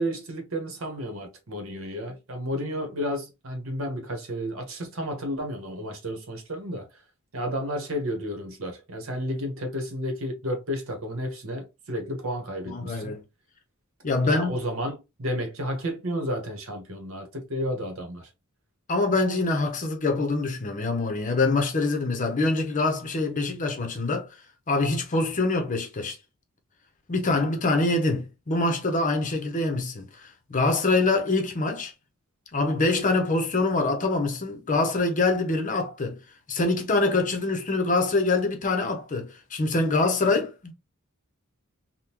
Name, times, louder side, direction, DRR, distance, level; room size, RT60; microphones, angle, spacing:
voice 1, 0.0-6.9 7.3-13.2 14.2-18.3, equal, 65° right, 1.1 m, -32 dB
voice 2, 12.7-13.2 14.0-14.5 18.9-24.3 24.7-26.2 27.1-30.1 30.5-31.9 32.5-36.2 36.5-40.7, left 3 dB, 35° left, 0.7 m, -25 dB
3.6 x 2.2 x 2.9 m
head